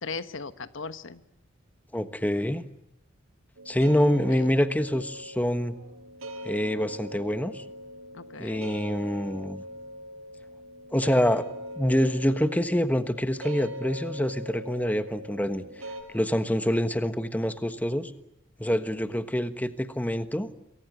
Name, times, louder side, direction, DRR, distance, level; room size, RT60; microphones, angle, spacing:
voice 1, 0.0-1.2 4.3-4.4 8.1-8.7 18.7-18.8, left 4 dB, 65° left, 12 dB, 1.2 m, -37 dB
voice 2, 1.9-2.6 3.7-5.7 6.4-7.6 8.4-9.6 10.9-11.5 11.8-15.6 16.1-18.1 18.6-20.5, equal, 10° left, 10 dB, 1.3 m, -26 dB
sound 1, 3.6-16.0, equal, 90° right, 7.3 m, -41 dB
28.0 x 23.5 x 7.8 m, 0.80 s
head